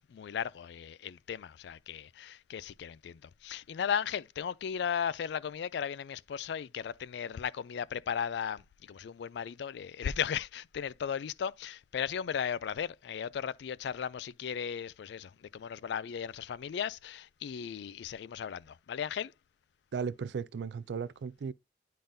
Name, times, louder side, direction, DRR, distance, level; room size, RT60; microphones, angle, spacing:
voice 1, 0.0-19.3, left 8 dB, 65° left, 0.3 m, -36 dB
voice 2, 19.9-21.5, right 6 dB, 70° right, 0.4 m, -36 dB
10.0 x 3.7 x 2.6 m
head